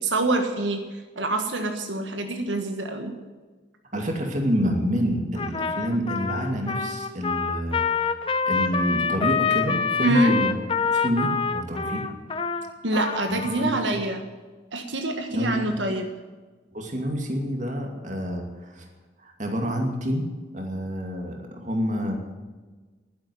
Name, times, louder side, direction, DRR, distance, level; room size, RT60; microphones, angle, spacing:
voice 1, 0.0-3.1 10.0-10.4 12.8-14.2 14.7-16.1, right 2 dB, 90° right, 5 dB, 1.7 m, -26 dB
voice 2, 3.9-8.2 8.5-10.5 10.9-12.1 13.3-14.0 15.3-15.6 16.7-18.9 19.2-20.3 20.5-22.2, equal, 40° right, 2 dB, 2.4 m, -28 dB
Trumpet, 5.4-13.7, left 5 dB, 30° left, 0.7 m, -26 dB
11.5 x 10.5 x 9.3 m, 1.3 s
head